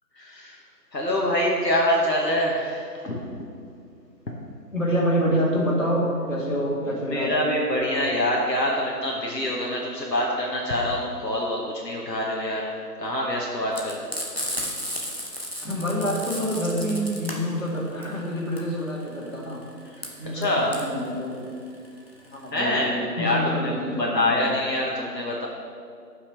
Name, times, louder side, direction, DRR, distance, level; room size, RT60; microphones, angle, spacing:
voice 1, 0.2-0.6 0.9-3.2 7.1-12.7 13.0-14.0 20.3-20.7 22.5-23.7 24.0-25.5, left 1 dB, 80° left, -3 dB, 1.4 m, -25 dB
voice 2, 4.7-7.5 15.6-19.6 20.2-21.5 22.3-24.6, equal, 50° left, -5 dB, 2.1 m, -27 dB
Frying (food), 13.7-22.5, equal, 40° right, 0.9 m, -34 dB
13.5 x 5.7 x 3.3 m, 2.3 s
figure-of-eight pair, 175°, 49 cm